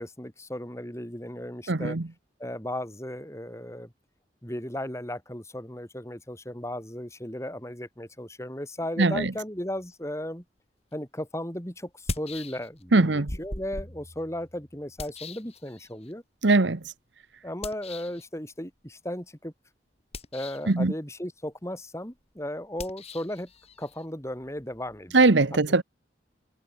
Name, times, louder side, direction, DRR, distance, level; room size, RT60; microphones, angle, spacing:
voice 1, 0.0-2.0 2.4-3.9 4.4-10.4 10.9-16.2 17.4-19.5 20.3-23.5 23.8-25.6, left 1 dB, 15° left, 4.7 m, -36 dB
voice 2, 1.7-2.0 9.0-9.3 12.9-13.3 16.4-16.8 20.7-20.9 25.1-25.8, right 3 dB, 80° right, 1.1 m, -21 dB
sound 1, 10.9-11.0 11.9-12.9 13.3-16.1 17.6-18.2 20.0-20.8 22.7-25.3, left 2 dB, 35° left, 4.7 m, -40 dB
head